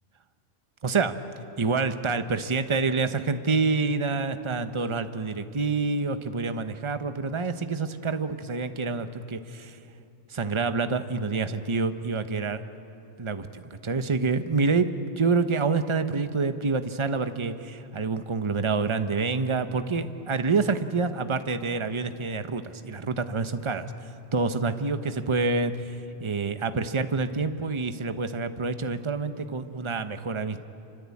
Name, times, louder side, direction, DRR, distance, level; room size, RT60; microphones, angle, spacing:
voice 1, 0.8-1.1 1.6-9.8 10.3-12.6 13.2-23.9 24.3-30.6, right 4 dB, 25° right, 9 dB, 1.0 m, -27 dB
27.5 x 25.5 x 8.5 m, 2.8 s
omnidirectional pair, 1.3 m